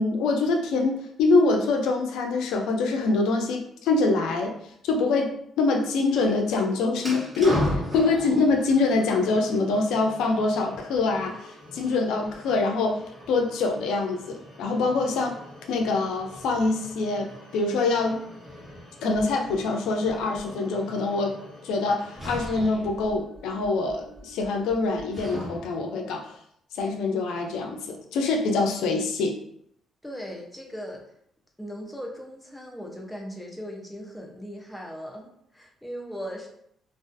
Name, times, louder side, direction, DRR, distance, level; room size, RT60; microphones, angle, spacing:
voice 1, 0.0-4.5 4.8-5.3 5.6-15.3 15.7-18.2 19.0-21.4 21.6-26.4 26.7-29.3, left 3 dB, 90° left, 3 dB, 0.4 m, -25 dB
sound 1, 7.0-25.9, left 1 dB, 10° right, 1.2 m, -38 dB
voice 2, 30.0-31.0 31.6-36.5, equal, 5° left, -1 dB, 0.6 m, -38 dB
2.4 x 2.3 x 2.5 m, 0.71 s
cardioid pair, 90°, 0 cm